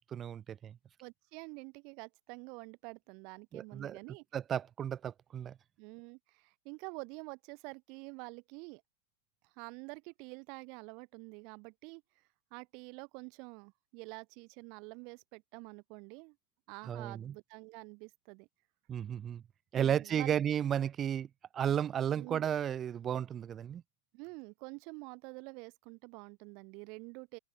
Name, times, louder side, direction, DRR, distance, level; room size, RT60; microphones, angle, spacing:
voice 1, 0.1-0.8 3.5-4.0 4.3-5.5 16.9-17.3 18.9-19.4 19.7-21.3 21.5-23.8, right 9 dB, 25° right, 2.5 m, -33 dB
voice 2, 1.0-4.2 5.8-8.8 9.4-12.2 12.5-16.4 16.7-18.5 19.7-20.3 22.1-22.4 24.1-27.4, right 32 dB, 45° right, 7.7 m, -48 dB
hypercardioid pair, 110°, 0 cm